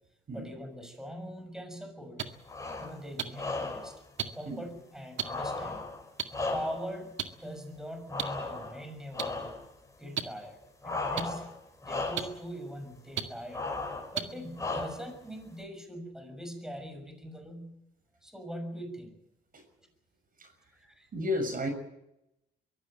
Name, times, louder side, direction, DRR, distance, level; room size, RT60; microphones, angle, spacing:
voice 1, 0.3-2.2 2.8-4.0 4.3-5.9 6.5-9.6 10.0-10.6 10.8-11.5 11.8-13.6 14.1-17.8 18.2-19.2 19.8-19.9 20.7-21.1, equal, 5° right, 6 dB, 6.6 m, -42 dB
sound 1, 2.2-2.3 3.2-3.3 4.2-4.3 5.2-5.3 6.2-6.3 7.2-7.3 8.2-8.3 9.2-9.3 10.2-10.3 11.2-11.3 12.2-12.3 13.2-13.3 14.1-14.2 15.1-15.2, right 9 dB, 75° right, 2.0 m, -31 dB
sound 2, 2.4-3.0 3.3-4.0 5.2-7.0 8.1-8.8 9.1-9.6 10.8-11.6 11.8-12.4 13.5-14.1 14.6-15.2, left 3 dB, 15° left, 5.6 m, -36 dB
voice 2, 21.1-21.7, left 1 dB, 45° right, 6 dB, 6.6 m, -32 dB
23.0 x 16.0 x 8.9 m, 0.85 s
cardioid pair, 90°, 20 cm